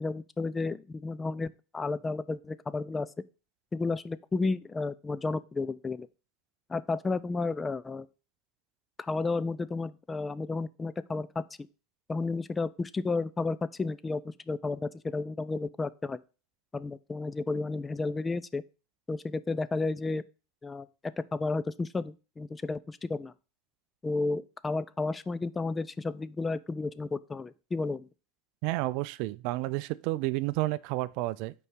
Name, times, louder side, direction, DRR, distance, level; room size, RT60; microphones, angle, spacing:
voice 1, 0.0-3.1 3.7-6.1 6.7-8.1 9.0-11.4 12.1-16.2 16.7-18.6 19.1-20.2 20.6-20.9 21.3-23.3 24.0-28.1, left 3 dB, 20° left, 0.4 m, -32 dB
voice 2, 28.6-31.5, right 18 dB, 60° right, 0.3 m, -31 dB
5.4 x 4.7 x 5.6 m
hypercardioid pair, 90°, 0 cm